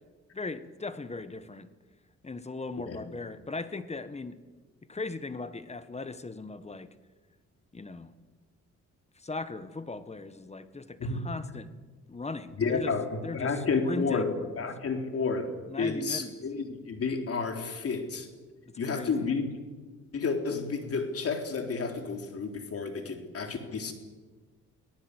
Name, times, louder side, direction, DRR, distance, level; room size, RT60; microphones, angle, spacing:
voice 1, 0.3-1.7 2.2-4.3 4.9-6.9 7.7-8.1 9.2-11.7 12.1-12.9 13.2-14.3 15.7-16.3 18.8-19.3, left 3 dB, 20° left, 12 dB, 1.5 m, -38 dB
voice 2, 12.6-15.5 15.8-18.3 18.8-19.5 20.1-23.9, left 4 dB, 50° left, 4 dB, 3.8 m, -31 dB
24.5 x 17.5 x 8.1 m, 1.3 s
cardioid pair, 90°, 30 cm